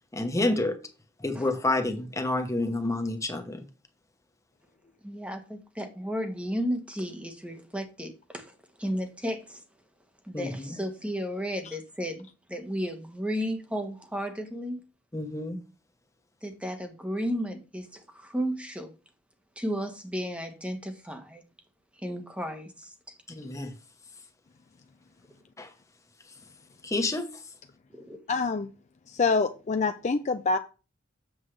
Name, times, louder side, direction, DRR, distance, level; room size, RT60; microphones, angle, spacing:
voice 1, 0.1-0.8 1.2-3.6 10.3-10.8 15.1-15.6 23.4-23.7 25.6-25.7 26.8-27.3, left 2 dB, 15° left, 1.0 m, -29 dB
voice 2, 5.0-9.6 10.2-14.8 16.4-18.9 19.6-21.4 22.0-23.2 27.9-28.2, equal, 5° right, 1.0 m, -34 dB
voice 3, 28.3-28.7 29.1-30.6, left 4 dB, 35° left, 0.4 m, -26 dB
7.9 x 7.1 x 3.2 m
head